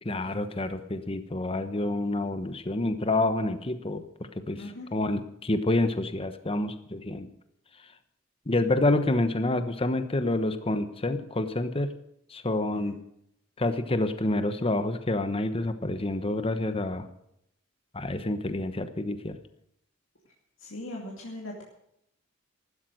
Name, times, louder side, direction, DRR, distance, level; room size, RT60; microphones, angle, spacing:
voice 1, 0.0-4.0 4.3-4.6 4.9-7.3 8.5-11.9 12.3-13.0 13.6-17.1 17.9-19.4, left 2 dB, 30° left, 10 dB, 1.1 m, -28 dB
voice 2, 20.6-21.6, left 1 dB, 80° left, -1 dB, 2.5 m, -39 dB
14.5 x 12.5 x 6.5 m, 0.75 s
head